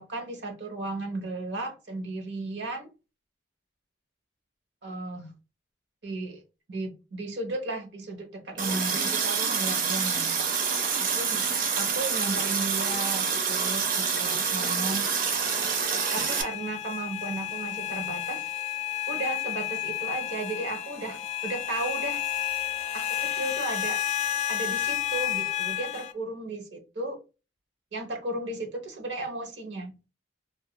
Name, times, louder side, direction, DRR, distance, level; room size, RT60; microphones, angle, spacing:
voice 1, 0.0-2.9 4.8-5.3 6.0-6.4 6.7-10.5 11.0-11.5 11.8-15.1 16.1-18.4 19.1-22.2 22.9-24.0 24.5-27.2 27.9-29.9, right 2 dB, 75° right, 0.8 m, -35 dB
Water tap faucet, 8.6-16.4, right 6 dB, 50° right, 0.5 m, -27 dB
sound 1, 15.3-26.1, left 12 dB, 35° left, 0.3 m, -31 dB
2.8 x 2.3 x 2.2 m
head